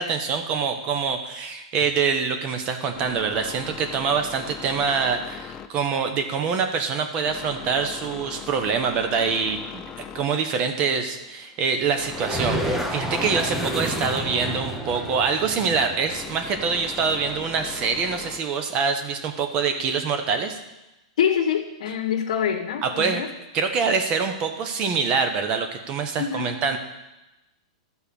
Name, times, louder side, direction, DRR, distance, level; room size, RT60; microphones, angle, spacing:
voice 1, 0.0-20.6 22.8-23.2 23.5-26.8, right 5 dB, 30° right, 7 dB, 1.0 m, -25 dB
sound 1, 2.9-18.4, left 8 dB, 20° left, 0.4 m, -41 dB
sound 2, 12.0-17.7, right 1 dB, 5° right, 0.8 m, -31 dB
voice 2, 21.2-23.3 26.2-26.6, left 8 dB, 80° left, 0 dB, 1.2 m, -25 dB
13.0 x 4.4 x 6.9 m, 0.98 s
supercardioid pair, 160°, 4 cm